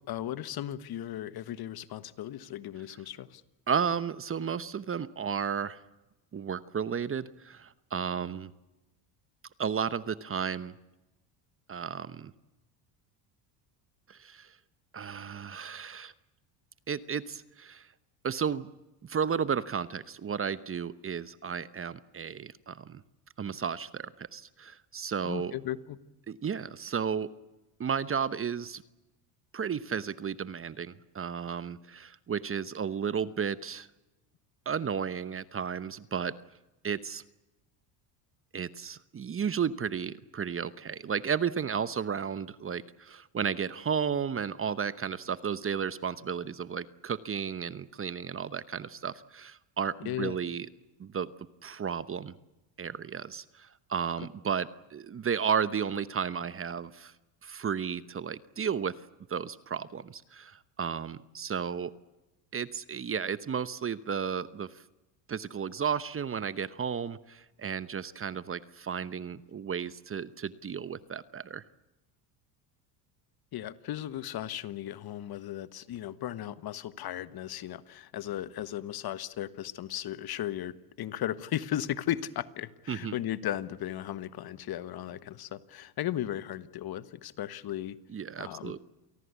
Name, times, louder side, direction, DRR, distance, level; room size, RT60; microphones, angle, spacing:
voice 1, 0.0-3.4 25.2-26.0 50.0-50.4 73.5-88.0 88.4-88.7, left 12 dB, 50° left, 15 dB, 1.4 m, -36 dB
voice 2, 3.7-5.8 6.3-8.5 9.6-10.8 11.7-12.3 14.1-14.6 14.9-16.1 16.9-17.9 18.2-18.7 19.0-23.0 23.4-25.5 26.3-27.3 27.8-28.8 29.5-33.9 34.7-36.4 36.8-37.2 38.5-50.7 51.0-51.3 51.6-52.3 52.8-57.1 57.4-59.0 59.3-61.9 62.5-64.8 65.3-71.6 82.9-83.1 88.1-88.8, right 7 dB, 25° right, 16 dB, 1.0 m, -33 dB
28.0 x 18.5 x 8.3 m, 1.0 s
supercardioid pair, 100°, 48 cm